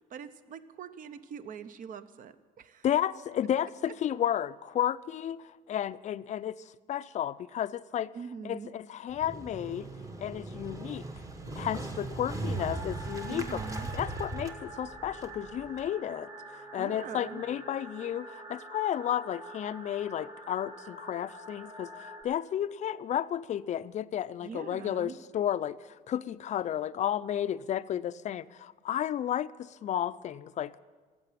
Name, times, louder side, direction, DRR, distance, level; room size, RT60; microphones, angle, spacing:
voice 1, 0.0-2.9 8.1-8.7 13.3-13.9 16.8-17.4 24.4-25.2, right 6 dB, 55° right, 13 dB, 0.8 m, -43 dB
voice 2, 2.8-6.6 6.9-8.1 8.4-9.9 10.2-11.0 11.6-13.6 13.9-16.3 16.7-30.8, left 10 dB, 45° left, 16 dB, 0.4 m, -32 dB
Motorcycle, 9.1-15.9, right 2 dB, 20° right, 1.1 m, -39 dB
Bass guitar, 11.4-17.6, right 5 dB, 85° right, 1.6 m, -57 dB
sound 1, 12.5-22.2, right 1 dB, 35° right, 3.2 m, -46 dB
14.0 x 7.7 x 9.2 m, 1.4 s
cardioid pair, 110°, 17 cm